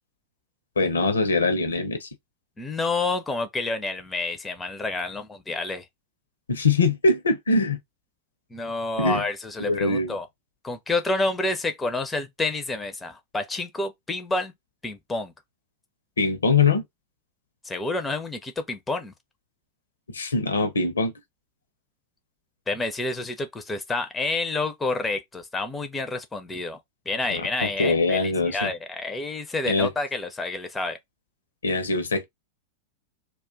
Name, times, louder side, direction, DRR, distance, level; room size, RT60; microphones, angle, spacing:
voice 1, 0.8-2.1 6.5-7.8 9.0-9.2 9.6-10.2 16.2-16.8 20.1-21.1 27.3-27.4 27.8-28.7 29.7-29.9 31.6-32.2, left 3 dB, 70° left, 0.7 m, -22 dB
voice 2, 2.6-5.9 8.5-10.3 10.6-14.5 14.8-15.3 17.6-19.1 22.7-26.8 27.1-31.0, left 2 dB, 15° left, 0.5 m, -29 dB
2.4 x 2.3 x 3.6 m
figure-of-eight pair, 90°, 0 cm